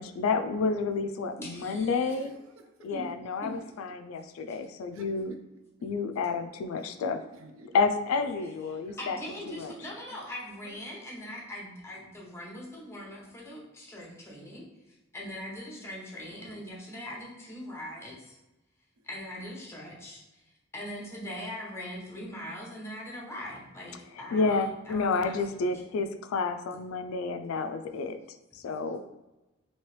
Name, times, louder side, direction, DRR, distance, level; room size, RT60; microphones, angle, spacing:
voice 1, 0.0-2.3 2.8-5.3 5.8-7.2 7.7-9.2 9.5-9.7 24.3-28.2 28.5-29.0, left 4 dB, 75° left, 9 dB, 0.3 m, -30 dB
voice 2, 1.4-2.1 2.9-3.0 4.5-4.6 9.0-14.6 15.1-18.4 19.0-20.4 20.7-25.6, left 1 dB, 15° left, -3 dB, 0.7 m, -41 dB
voice 3, 2.1-2.9 4.9-5.4 6.8-6.9 7.2-7.7 8.9-9.0 10.1-10.3 10.6-10.8 16.3-17.1 19.0-19.1 25.9-26.2 26.7-26.8, right 2 dB, 70° right, 5 dB, 0.4 m, -53 dB
3.0 x 2.8 x 3.1 m, 1.0 s
head